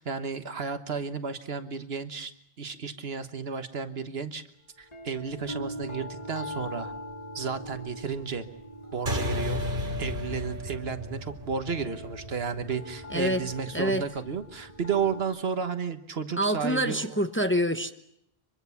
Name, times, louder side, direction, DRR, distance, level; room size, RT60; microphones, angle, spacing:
voice 1, 0.0-2.3 2.6-4.4 5.0-6.9 7.3-8.4 8.9-9.6 10.0-17.2, right 6 dB, 75° right, 1.5 m, -32 dB
sound 1, 4.8-15.2, equal, 40° left, 3.8 m, -42 dB
sound 2, 9.1-13.9, left 1 dB, 55° right, 3.0 m, -34 dB
voice 2, 13.1-13.5 13.7-14.0 16.4-17.9, equal, 10° left, 0.9 m, -26 dB
24.5 x 23.5 x 7.1 m
omnidirectional pair, 1.0 m